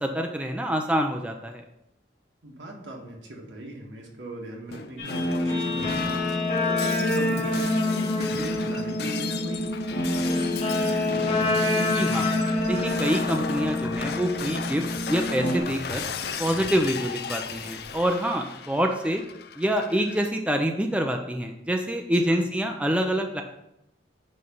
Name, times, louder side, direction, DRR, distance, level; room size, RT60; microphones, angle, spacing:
voice 1, 0.0-1.6 11.7-12.3 12.7-16.0 16.4-19.2 19.6-23.4, equal, 5° right, 3 dB, 0.5 m, -26 dB
voice 2, 2.4-6.2 6.7-9.8 10.1-11.4 22.3-22.4, right 1 dB, 85° right, -1 dB, 1.8 m, -39 dB
Shatter, 4.7-20.3, left 6 dB, 55° left, 0.5 m, -36 dB
Guitar, 5.0-15.6, left 2 dB, 40° left, 1.9 m, -26 dB
9.6 x 3.3 x 5.4 m, 0.85 s
head